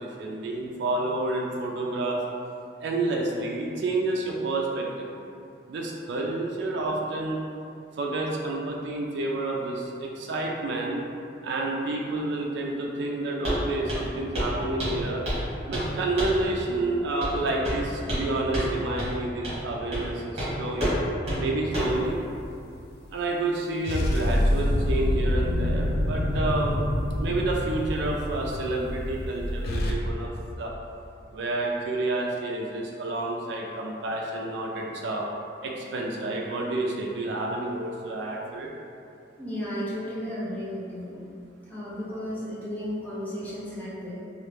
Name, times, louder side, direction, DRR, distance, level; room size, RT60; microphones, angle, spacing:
voice 1, 0.0-2.2 2.8-4.8 5.7-7.4 8.0-11.0 11.4-15.2 15.7-20.1 20.6-21.0 21.4-22.2 23.1-26.7 27.2-30.3 30.6-30.7 31.3-35.2 35.6-38.7, right 2 dB, 65° right, -1 dB, 0.3 m, -29 dB
Walk footsteps, 13.4-13.6 13.9-14.1 14.3-14.5 14.8-15.4 15.7-15.9 16.2-16.4 17.2-17.4 17.6-18.3 18.5-18.7 19.0-19.1 19.4-19.6 19.9-20.1 20.4-20.5 20.8-21.0 21.3-21.4 21.7-22.0, equal, 35° right, 1.3 m, -28 dB
sound 1, 21.8-22.5 23.8-29.9, left 1 dB, 55° left, 0.3 m, -26 dB
voice 2, 39.4-41.3 41.7-44.2, equal, 10° left, -9 dB, 0.6 m, -34 dB
3.0 x 2.4 x 3.2 m, 2.5 s
head